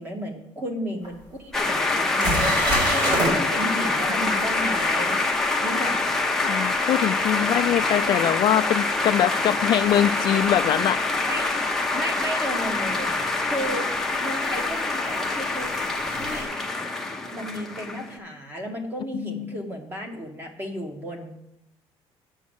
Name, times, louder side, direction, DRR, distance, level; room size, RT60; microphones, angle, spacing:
voice 1, 0.0-5.2 5.6-6.2 7.4-8.4 11.2-11.5 11.9-13.1 13.4-13.9 14.2-16.5 17.3-21.4, equal, 20° right, 4 dB, 1.4 m, -33 dB
sound 1, 1.0-1.1 1.7-1.8 2.2-3.3 8.5-8.6 11.3-11.4 13.1-13.2 14.6-16.4, right 1 dB, 45° right, 4.1 m, -27 dB
sound 2, 1.5-18.2, left 3 dB, 5° left, 0.7 m, -25 dB
voice 2, 6.4-11.0 19.1-19.5, left 11 dB, 45° left, 9 dB, 0.3 m, -23 dB
8.5 x 6.3 x 7.3 m, 0.83 s
cardioid pair, 170°, 11 cm